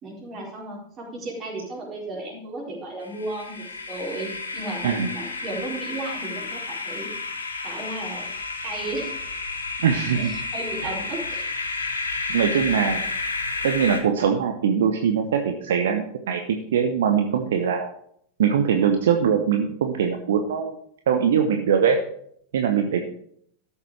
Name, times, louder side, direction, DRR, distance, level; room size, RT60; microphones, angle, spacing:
voice 1, 0.0-7.1 7.6-8.3 8.6-9.2 10.1-11.5, right 2 dB, 30° right, -1 dB, 4.1 m, -34 dB
sound 1, 3.0-14.0, left 3 dB, 75° left, 2.0 m, -31 dB
voice 2, 9.8-10.3 10.8-10.9 12.3-13.0 13.6-17.9 18.4-20.8 21.1-22.0 22.5-23.0, right 7 dB, 60° right, 5 dB, 1.0 m, -22 dB
13.0 x 7.0 x 4.7 m, 0.66 s
figure-of-eight pair, 90°, 0 cm